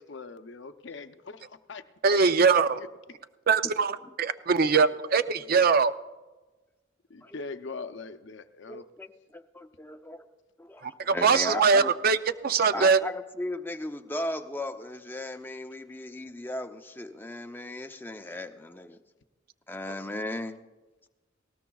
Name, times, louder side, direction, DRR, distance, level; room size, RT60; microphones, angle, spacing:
voice 1, 0.0-1.8 2.1-2.9 7.1-8.8, left 4 dB, 65° left, 10 dB, 0.6 m, -41 dB
voice 2, 2.0-2.8 3.5-5.9 10.8-12.2 12.4-13.0, right 5 dB, 50° right, 12 dB, 0.5 m, -22 dB
voice 3, 8.7-10.2 10.6-11.9 12.7-19.0 19.7-20.6, left 1 dB, 10° left, 7 dB, 0.6 m, -36 dB
19.5 x 18.0 x 2.3 m, 1.2 s
head